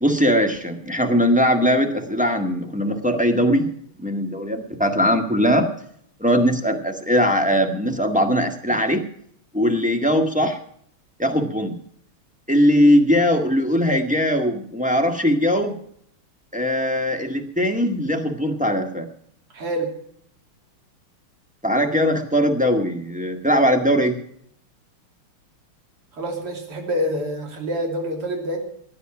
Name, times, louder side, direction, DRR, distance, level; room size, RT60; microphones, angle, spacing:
voice 1, 0.0-3.7 4.0-5.7 6.2-9.0 9.5-10.6 11.2-11.7 12.5-15.8 16.5-19.1 21.6-24.1, equal, 5° right, 2 dB, 1.3 m, -20 dB
voice 2, 19.5-19.9 26.1-28.6, equal, 90° right, 2 dB, 3.8 m, -26 dB
15.5 x 10.5 x 6.0 m, 0.65 s
omnidirectional pair, 2.4 m